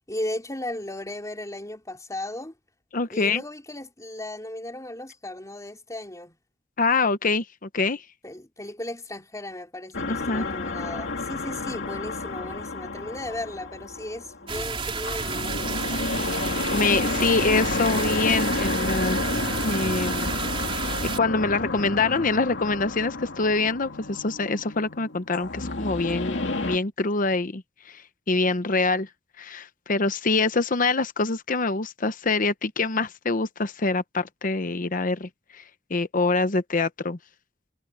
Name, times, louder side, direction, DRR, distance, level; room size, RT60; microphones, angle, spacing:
voice 1, 0.0-2.5 3.1-6.4 8.2-16.0, left 1 dB, 20° left, 4.0 m, -36 dB
voice 2, 2.9-3.4 6.8-8.0 10.1-10.4 16.7-19.2 19.6-20.3 20.7-27.6 27.9-28.0 28.3-29.1 29.4-35.3 35.9-37.2, left 3 dB, 50° left, 0.9 m, -25 dB
sound 1, 9.9-26.8, left 2 dB, 75° left, 2.7 m, -30 dB
sound 2, 14.5-21.2, right 4 dB, 30° right, 3.1 m, -30 dB
head